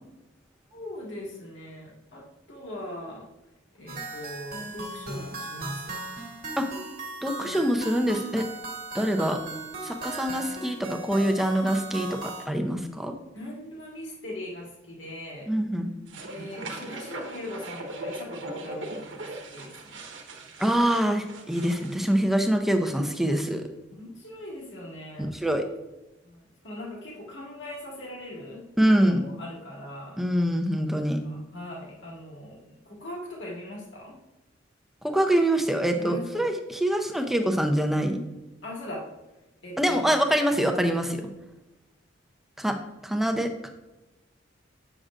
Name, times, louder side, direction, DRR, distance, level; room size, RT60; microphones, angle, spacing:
voice 1, 0.7-3.3 3.7-5.9 7.4-7.6 13.3-15.5 16.2-20.0 24.0-25.3 26.2-28.6 29.0-30.2 31.2-34.2 36.0-36.5 38.6-39.1 39.6-40.3, left 1 dB, 70° left, -3 dB, 1.9 m, -40 dB
sound 1, 3.9-12.5, right 3 dB, 50° right, 1.3 m, -37 dB
voice 2, 7.2-8.4 8.9-9.4 9.8-10.8 11.0-13.1 15.5-15.9 20.6-23.6 25.3-25.6 28.8-29.3 30.2-31.2 35.0-38.2 39.8-41.2 42.6-42.8 43.0-43.7, right 1 dB, ahead, 4 dB, 0.5 m, -24 dB
sound 2, 16.1-22.0, right 2 dB, 70° right, 1.0 m, -39 dB
7.6 x 6.5 x 2.5 m, 1.0 s
head